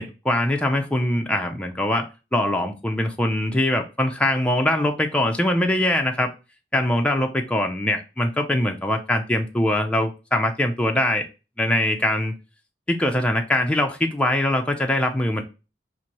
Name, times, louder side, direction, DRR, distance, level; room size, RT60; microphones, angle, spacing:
voice 1, 0.0-6.3 6.7-11.3 11.6-12.3 12.9-15.4, left 1 dB, 5° left, 3 dB, 0.4 m, -22 dB
4.3 x 2.6 x 2.9 m, 0.30 s
head